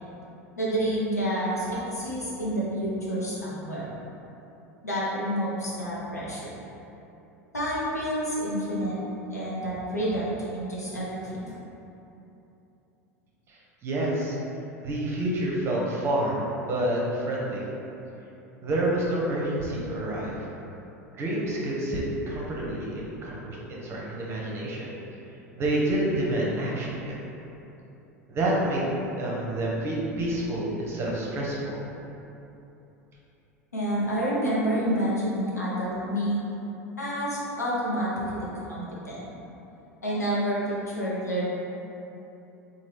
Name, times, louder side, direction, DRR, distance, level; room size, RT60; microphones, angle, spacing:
voice 1, 0.6-3.8 4.8-6.5 7.5-9.0 9.3-11.6 33.7-36.4 37.0-39.3 40.0-41.5, equal, 85° left, -7 dB, 0.7 m, -29 dB
voice 2, 13.5-14.4 14.8-17.7 18.6-20.4 21.1-23.6 23.8-24.9 25.6-27.1 28.3-28.9 29.2-31.8, right 1 dB, 30° right, -4 dB, 0.7 m, -28 dB
3.0 x 2.3 x 3.2 m, 2.9 s
figure-of-eight pair, 80°, 9 cm